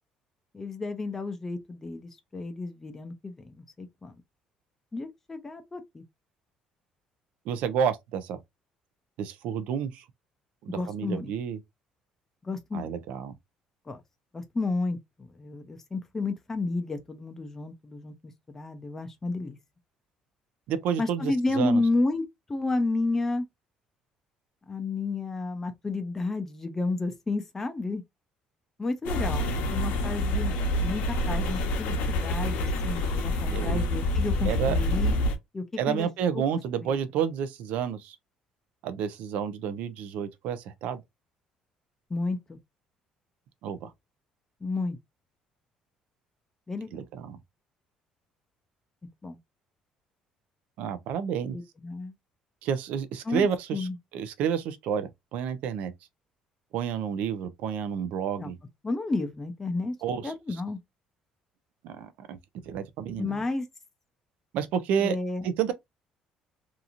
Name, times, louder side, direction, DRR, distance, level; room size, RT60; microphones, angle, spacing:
voice 1, 0.5-4.2 4.9-6.0 10.7-11.3 12.4-13.0 13.9-14.0 14.3-19.6 21.0-23.5 24.7-28.0 28.8-35.1 35.5-36.1 36.3-36.4 36.8-36.9 42.1-42.6 44.6-45.0 46.7-47.0 49.2-49.4 51.5-52.1 53.2-53.5 53.7-54.0 58.4-58.5 58.8-59.9 60.2-60.8 63.2-63.7 65.0-65.7, left 3 dB, 15° left, 0.4 m, -31 dB
voice 2, 7.5-8.4 9.2-10.0 10.6-11.6 12.7-13.3 20.7-21.8 33.5-33.9 34.4-34.8 35.8-38.2 38.8-41.0 43.6-43.9 46.9-47.4 50.8-51.6 52.6-53.9 54.1-55.9 56.7-58.6 60.0-60.3 61.8-62.4 62.7-63.4 64.5-65.2 65.4-65.7, right 8 dB, 70° right, 0.5 m, -30 dB
sound 1, 29.0-35.3, left 1 dB, 80° left, 0.8 m, -27 dB
2.8 x 2.5 x 2.5 m
cardioid pair, 155°, 3 cm